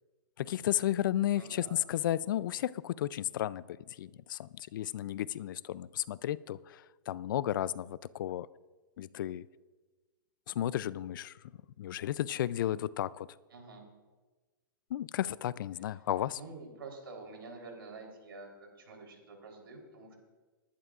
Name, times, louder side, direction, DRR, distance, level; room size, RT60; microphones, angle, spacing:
voice 1, 0.4-8.5 9.0-9.4 10.5-11.3 11.8-13.3 14.9-16.4, left 12 dB, 65° left, 20 dB, 0.4 m, -33 dB
voice 2, 1.3-1.8 13.5-13.8 16.4-20.1, right 3 dB, 85° right, 1 dB, 3.7 m, -48 dB
20.0 x 11.5 x 2.5 m, 1.3 s
hypercardioid pair, 135°, 12 cm